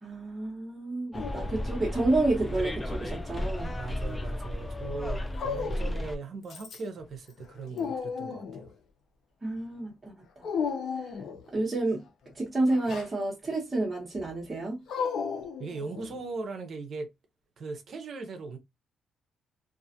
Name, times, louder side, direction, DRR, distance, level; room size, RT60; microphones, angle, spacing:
voice 1, 0.0-3.7 9.4-10.5 11.0-11.1 11.5-12.0 12.3-14.8, right 2 dB, 25° right, 0.9 m, -30 dB
Dog, 1.1-2.0 3.1-3.9 5.3-6.1 6.5-7.0 7.4-8.7 10.4-11.5 12.7-13.1 14.9-16.2, left 6 dB, 65° left, 0.7 m, -35 dB
Bus, 1.1-6.2, left 1 dB, 20° left, 0.5 m, -34 dB
voice 2, 3.7-8.7 15.6-17.1 17.6-18.6, right 3 dB, 55° right, 0.6 m, -39 dB
2.4 x 2.4 x 2.7 m
cardioid pair, 90°, 0 cm